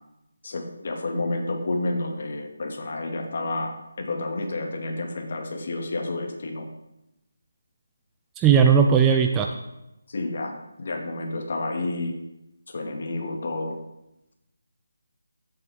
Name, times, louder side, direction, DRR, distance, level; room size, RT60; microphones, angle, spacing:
voice 1, 0.4-6.7 10.1-10.5 10.8-12.2 12.7-13.8, left 2 dB, 50° left, 2 dB, 2.0 m, -30 dB
voice 2, 8.4-9.5, right 7 dB, 10° right, 3 dB, 0.5 m, -17 dB
16.0 x 7.7 x 3.6 m, 0.89 s
figure-of-eight pair, 170°, 0 cm